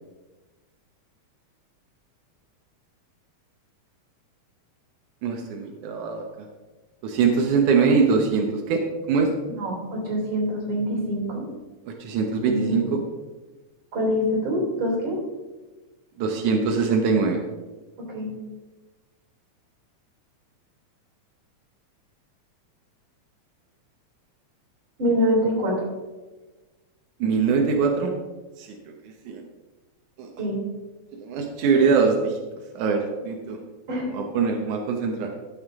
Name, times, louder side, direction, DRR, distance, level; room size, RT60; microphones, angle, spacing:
voice 1, 5.2-6.2 7.0-8.8 9.1-9.3 11.9-13.0 16.2-17.4 27.2-28.1 28.6-28.7 29.3-29.4 30.2-30.3 31.1-32.4 32.8-33.6 34.1-35.3, right 5 dB, 90° right, 2 dB, 2.4 m, -22 dB
voice 2, 9.6-11.5 12.4-12.8 13.9-15.2 18.1-18.3 25.0-25.8 30.4-30.6 33.9-34.2, equal, 40° right, -1 dB, 4.0 m, -25 dB
12.5 x 8.6 x 3.6 m, 1.2 s
omnidirectional pair, 3.4 m